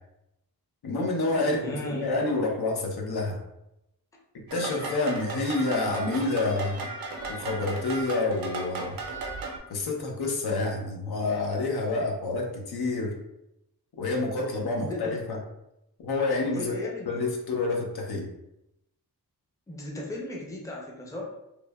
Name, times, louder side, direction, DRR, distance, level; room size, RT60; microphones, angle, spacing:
voice 1, 0.8-3.4 4.3-6.8 7.3-9.0 9.7-13.1 14.0-15.4 16.0-16.7 17.1-18.3, left 3 dB, 75° left, 0 dB, 0.7 m, -28 dB
voice 2, 1.3-2.1 14.8-15.2 16.5-17.2 19.7-21.3, left 1 dB, 10° left, -2 dB, 0.5 m, -36 dB
sound 1, 4.5-9.6, right 3 dB, 65° right, 0.6 m, -36 dB
3.0 x 2.1 x 2.2 m, 0.87 s
wide cardioid pair, 95°, 38 cm